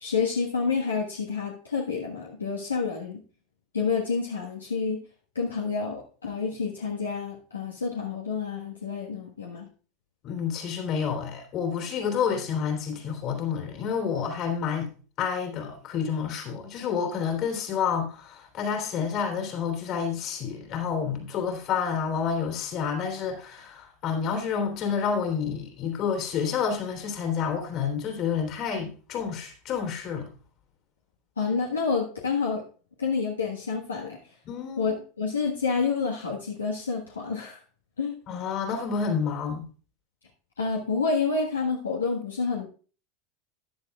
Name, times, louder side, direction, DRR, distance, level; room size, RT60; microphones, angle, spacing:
voice 1, 0.0-3.2 3.7-5.0 5.3-9.7 31.4-32.6 33.0-34.2 34.8-37.6 38.0-38.1 40.6-42.7, left 5 dB, 80° left, 1.4 m, -28 dB
voice 2, 10.2-14.9 15.2-30.3 34.4-35.0 38.3-39.6, left 6 dB, 45° left, 3.1 m, -29 dB
14.0 x 10.5 x 2.4 m
figure-of-eight pair, 80°, 0 cm